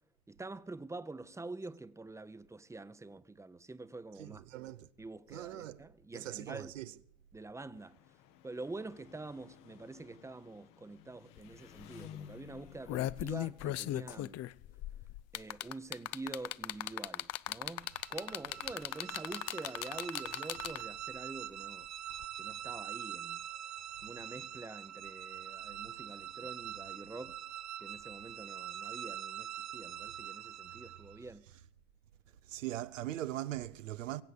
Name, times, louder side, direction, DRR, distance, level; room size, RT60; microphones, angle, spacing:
voice 1, 0.3-4.4 5.0-6.7 7.3-8.0 8.4-14.4 15.3-21.9 22.4-23.4 24.0-27.4 27.8-31.4, right 2 dB, 10° right, 0.8 m, -46 dB
voice 2, 4.2-4.9 5.3-5.8 6.1-6.9 32.5-34.2, right 14 dB, 90° right, 0.8 m, -40 dB
Engine, 7.7-14.3, left 10 dB, 60° left, 1.1 m, -55 dB
sound 1, 11.4-11.5 11.8-12.0 12.6-21.0 22.2-22.3, left 15 dB, 45° left, 0.6 m, -38 dB
sound 2, 17.8-31.2, right 11 dB, 45° right, 1.0 m, -44 dB
23.0 x 8.0 x 6.8 m
hypercardioid pair, 80°, 37 cm